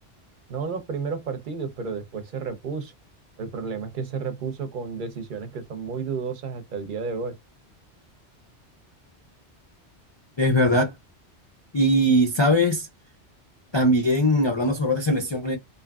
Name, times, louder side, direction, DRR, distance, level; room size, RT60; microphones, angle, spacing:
voice 1, 0.5-2.9 3.4-7.4, right 5 dB, 50° right, 0.7 m, -32 dB
voice 2, 10.4-10.9 11.7-12.9 13.7-15.6, equal, 40° left, 0.4 m, -20 dB
2.8 x 2.5 x 2.2 m
omnidirectional pair, 1.2 m